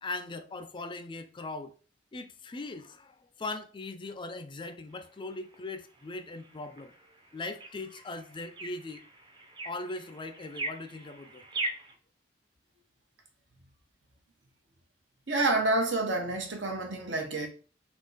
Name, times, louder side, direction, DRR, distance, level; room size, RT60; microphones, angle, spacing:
voice 1, 0.0-1.7 2.1-6.9 7.3-9.1 9.6-11.4, left 2 dB, 25° left, 0.4 m, -40 dB
sound 1, 4.9-11.9, right 2 dB, 25° right, 0.6 m, -42 dB
voice 2, 15.3-17.5, right 2 dB, 75° right, 1.0 m, -28 dB
3.7 x 2.9 x 4.0 m
head